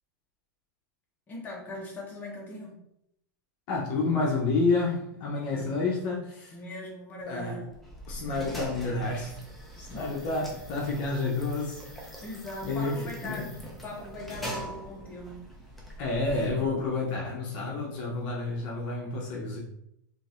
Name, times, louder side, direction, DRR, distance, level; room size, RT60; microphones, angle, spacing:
voice 1, 1.3-2.8 5.4-6.0 6.5-7.7 8.2-8.6 9.7-10.3 12.0-13.5 13.8-15.5, left 1 dB, 15° left, -4 dB, 1.1 m, -41 dB
voice 2, 3.7-6.5 7.3-7.6 8.1-9.3 9.8-12.1 12.6-13.4 16.0-19.6, left 3 dB, 45° left, -3 dB, 0.8 m, -29 dB
sound 1, 7.7-17.0, equal, ahead, 0.6 m, -43 dB
3.8 x 2.7 x 2.5 m, 0.78 s
supercardioid pair, 145°, 10 cm